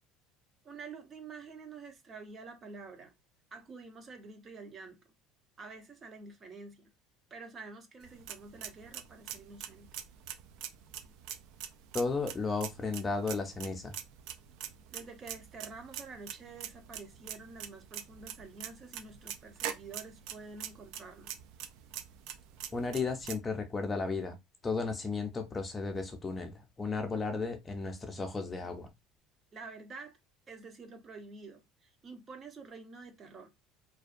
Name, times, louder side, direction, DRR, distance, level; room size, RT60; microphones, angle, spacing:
voice 1, 0.6-3.1 3.5-5.0 5.6-6.9 7.3-9.9 14.9-21.4 29.5-30.2 30.5-33.5, right 4 dB, 30° right, 0.6 m, -48 dB
sound 1, 8.0-23.3, right 10 dB, 70° right, 0.3 m, -44 dB
voice 2, 11.9-13.9 22.7-24.4 24.6-28.9, left 4 dB, 20° left, 0.4 m, -34 dB
2.6 x 2.1 x 2.4 m
cardioid pair, 125°, 0 cm